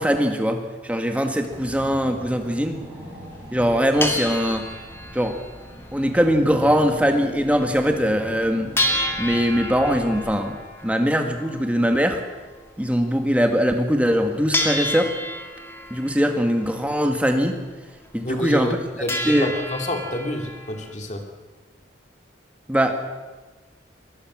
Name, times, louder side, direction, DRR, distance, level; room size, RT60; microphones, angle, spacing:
voice 1, 0.0-2.8 3.5-4.7 5.1-5.4 5.9-8.7 9.2-12.2 12.8-15.1 15.9-17.5 18.1-18.8 19.2-19.5 22.7-23.0, equal, 5° right, 4 dB, 1.9 m, -21 dB
sound 1, 1.4-1.6 2.1-2.2 2.4-2.6 3.3-3.4 3.6-6.8 7.0-7.1 7.5-7.6 8.0-8.1 8.8-13.3 14.0-14.1 14.5-17.5 17.9-18.0 18.3-18.8 19.1-20.9, left 1 dB, 15° left, 2.2 m, -30 dB
Car / Engine, 1.5-10.7, right 1 dB, 20° right, 6.6 m, -41 dB
voice 2, 18.2-18.7 19.0-21.3, left 1 dB, 40° left, 3 dB, 2.7 m, -28 dB
23.0 x 19.5 x 6.3 m, 1.3 s
head